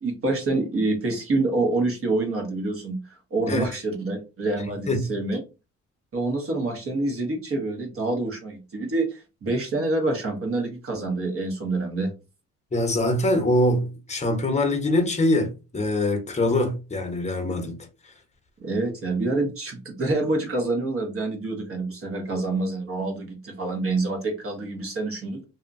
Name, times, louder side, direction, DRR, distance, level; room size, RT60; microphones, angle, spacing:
voice 1, 0.0-3.0 3.3-5.4 6.1-12.1 18.6-25.5, right 2 dB, 45° right, 1.2 m, -27 dB
voice 2, 12.7-17.8, left 1 dB, 20° left, 1.0 m, -23 dB
2.7 x 2.4 x 2.5 m
cardioid pair, 90°, 30 cm